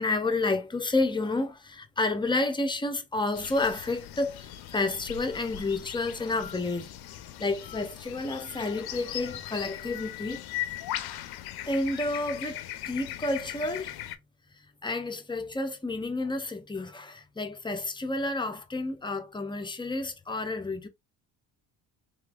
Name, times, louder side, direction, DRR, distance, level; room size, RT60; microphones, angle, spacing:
voice 1, 0.0-6.9 7.4-10.5 11.6-14.0 14.8-20.9, left 2 dB, 10° left, 0.6 m, -30 dB
sound 1, 3.3-14.2, left 12 dB, 55° left, 0.6 m, -39 dB
3.2 x 2.9 x 2.3 m
supercardioid pair, 70°, 46 cm